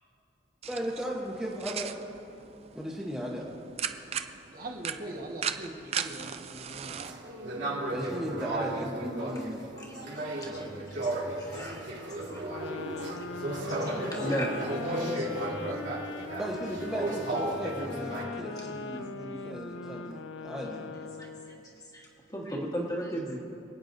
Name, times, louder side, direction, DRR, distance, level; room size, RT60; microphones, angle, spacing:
sound 1, 0.6-7.1, right 8 dB, 35° right, 0.4 m, -38 dB
voice 1, 0.7-1.9 2.7-3.4 7.9-9.6 16.4-21.0, equal, 5° right, -6 dB, 1.0 m, -36 dB
voice 2, 4.5-6.9 13.8-14.4 14.7-16.1, right 1 dB, 50° right, 1 dB, 1.4 m, -41 dB
sound 2, 7.0-18.2, right 1 dB, 90° right, 2.1 m, -35 dB
voice 3, 9.9-12.3 13.0-13.3 13.5-13.9 14.2-14.6 15.2-15.3 21.2-21.3 21.9-23.4, equal, 20° left, -2 dB, 1.5 m, -36 dB
sound 3, 12.5-21.7, left 4 dB, 80° left, 0.5 m, -40 dB
27.5 x 9.1 x 2.7 m, 2.7 s
head